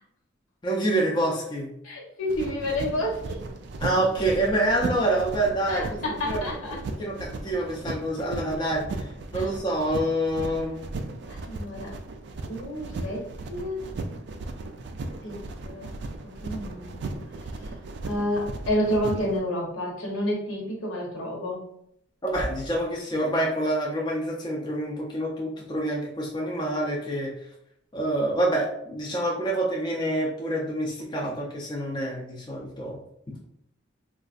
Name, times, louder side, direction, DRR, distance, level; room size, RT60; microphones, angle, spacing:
voice 1, 0.6-1.7 3.8-6.0 6.3-6.4 6.7-9.1 9.3-10.8 22.2-27.3 27.9-33.0, right 1 dB, 20° left, -2 dB, 0.4 m, -27 dB
voice 2, 1.8-3.4 5.7-6.8 9.3-9.5 11.3-11.9 12.4-13.8 15.2-15.4 15.6-15.9 16.2-17.2 18.0-21.6, equal, 80° left, -1 dB, 1.0 m, -30 dB
sound 1, 2.3-19.4, right 2 dB, 55° right, 0.3 m, -36 dB
sound 2, 19.5-20.0 20.3-20.4 22.2-23.1, equal, 55° left, 0.7 m, -38 dB
3.8 x 2.3 x 2.5 m, 0.73 s
head